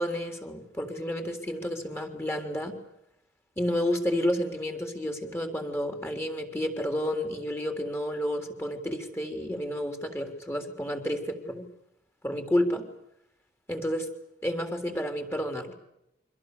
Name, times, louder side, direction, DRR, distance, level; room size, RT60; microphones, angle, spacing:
voice 1, 0.0-2.7 3.6-11.7 12.2-12.8 13.7-14.1 14.4-15.8, equal, 15° left, 6 dB, 3.6 m, -30 dB
29.0 x 24.5 x 6.9 m, 0.83 s
head